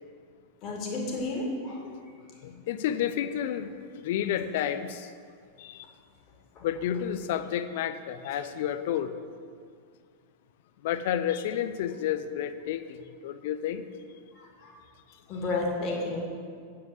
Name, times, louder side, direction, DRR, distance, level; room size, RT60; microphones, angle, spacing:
voice 1, 0.6-2.0 6.5-6.6 14.3-14.7 15.3-16.2, left 2 dB, 35° left, -1 dB, 2.3 m, -32 dB
voice 2, 2.4-3.7 4.0-5.1 5.6-5.8 6.6-9.1 10.8-13.0 13.2-13.8, left 10 dB, 55° left, 11 dB, 0.6 m, -30 dB
8.7 x 5.7 x 7.7 m, 2.1 s
figure-of-eight pair, 90°, 0 cm